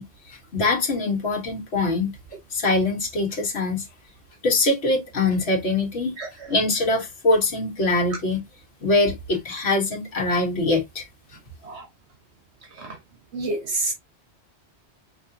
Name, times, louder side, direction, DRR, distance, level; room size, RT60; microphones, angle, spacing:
voice 1, 0.0-2.1 2.5-3.9 4.4-6.2 6.5-8.4 8.8-11.1, left 2 dB, 70° left, 1.7 m, -23 dB
voice 2, 6.2-6.5 11.6-11.9 12.8-13.0 13.3-13.9, right 2 dB, 80° right, 1.5 m, -29 dB
5.3 x 3.4 x 2.8 m
omnidirectional pair, 1.1 m